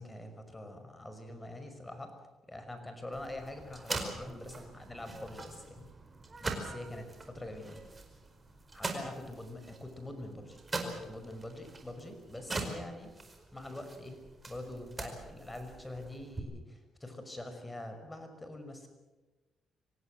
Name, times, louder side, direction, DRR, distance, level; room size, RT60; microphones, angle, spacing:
voice 1, 0.0-2.1 2.5-5.9 6.4-7.8 8.7-13.1 13.5-14.2 14.5-18.9, left 1 dB, 15° left, 7 dB, 5.6 m, -44 dB
sound 1, 3.1-16.4, right 3 dB, 25° right, 4.9 m, -43 dB
25.0 x 17.5 x 7.9 m, 1.2 s
cardioid pair, 90°, 0 cm